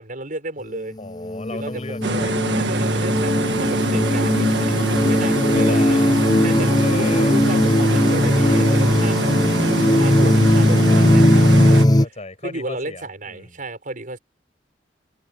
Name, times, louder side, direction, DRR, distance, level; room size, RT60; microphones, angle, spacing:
voice 1, 0.0-1.0 1.5-1.8 2.5-6.0 6.4-9.5 9.8-12.0 12.4-14.2, right 2 dB, 50° right, 7.2 m, -33 dB
voice 2, 1.0-2.4 5.5-6.2 6.8-7.5 12.0-13.6, left 2 dB, 40° left, 6.1 m, -34 dB
sound 1, 1.0-12.1, left 1 dB, 25° left, 0.9 m, -18 dB
sound 2, 2.0-11.9, right 2 dB, 85° right, 1.6 m, -24 dB
head